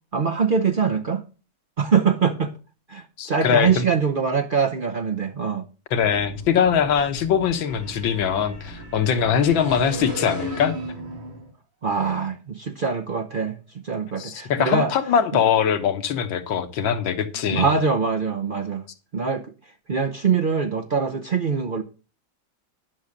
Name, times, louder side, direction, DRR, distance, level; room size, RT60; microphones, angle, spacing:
voice 1, 0.1-1.2 1.8-2.5 2.9-5.7 11.8-14.9 17.4-18.8 19.1-19.5 19.9-21.8, right 5 dB, 50° right, 0.6 m, -23 dB
voice 2, 3.2-3.8 5.9-10.7 14.2-17.7, left 7 dB, 75° left, 1.9 m, -22 dB
sound 1, 6.0-11.5, right 1 dB, 85° right, 5.1 m, -36 dB
11.5 x 6.3 x 6.5 m
omnidirectional pair, 2.2 m